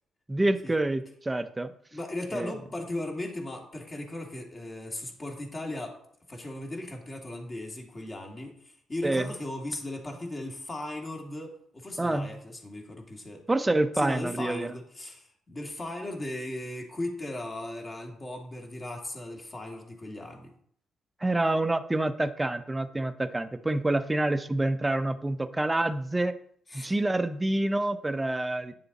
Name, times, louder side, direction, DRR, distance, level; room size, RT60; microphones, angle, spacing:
voice 1, 0.3-1.7 2.3-2.5 9.0-9.3 12.0-12.3 13.5-14.7 21.2-26.4 26.7-28.7, right 2 dB, 15° right, 10 dB, 0.7 m, -27 dB
voice 2, 1.9-6.0 6.3-13.4 13.9-20.5 26.7-26.9, left 1 dB, 30° left, 1 dB, 2.4 m, -37 dB
9.6 x 6.9 x 4.1 m, 0.64 s
cardioid pair, 90°, 0 cm